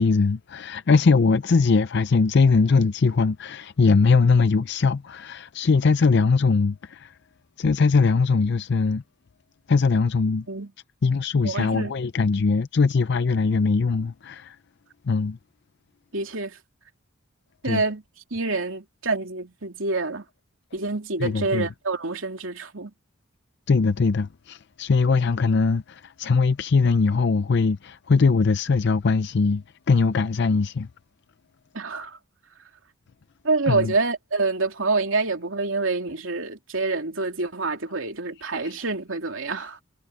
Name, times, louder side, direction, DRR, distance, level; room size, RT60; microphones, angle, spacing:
voice 1, 0.0-7.1 7.6-9.0 9.7-10.5 11.0-14.6 15.1-15.4 17.6-17.8 21.2-21.7 23.7-30.9 33.7-33.9 38.6-38.8, left 4 dB, 60° left, 0.5 m, -21 dB
voice 2, 11.4-11.9 16.1-16.6 17.6-18.0 18.3-20.2 20.7-22.9 31.7-32.2 33.4-39.8, right 3 dB, 80° right, 2.8 m, -27 dB
head